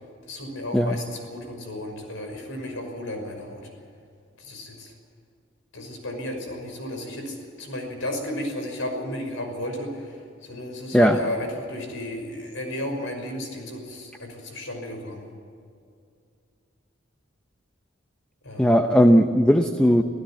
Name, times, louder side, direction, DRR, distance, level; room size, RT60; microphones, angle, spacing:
voice 1, 0.3-3.6 4.4-4.9 5.7-15.3 18.4-18.8, left 1 dB, 75° left, 4 dB, 5.9 m, -33 dB
voice 2, 18.6-20.0, equal, 5° left, 6 dB, 0.8 m, -17 dB
26.5 x 16.0 x 7.6 m, 2.4 s
head